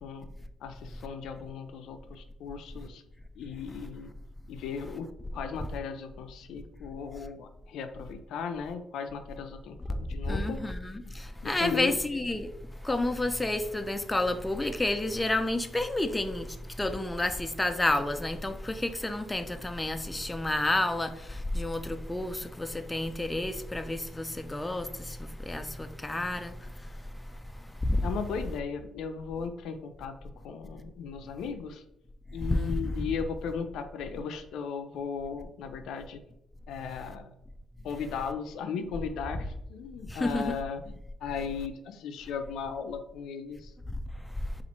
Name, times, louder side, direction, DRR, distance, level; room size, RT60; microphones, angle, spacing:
voice 1, 0.6-3.0 3.4-4.1 4.5-10.6 11.4-12.0 28.0-31.8 32.3-36.2 36.7-37.3 37.8-43.7, left 6 dB, 80° left, 0.4 m, -37 dB
voice 2, 10.3-11.0 11.4-12.5 12.8-16.5 16.8-21.1 21.5-25.2 25.5-26.5 27.9-28.0 32.5-33.1 40.1-40.6, left 1 dB, 15° left, 0.4 m, -30 dB
4.2 x 2.5 x 4.1 m
cardioid pair, 90°, 0 cm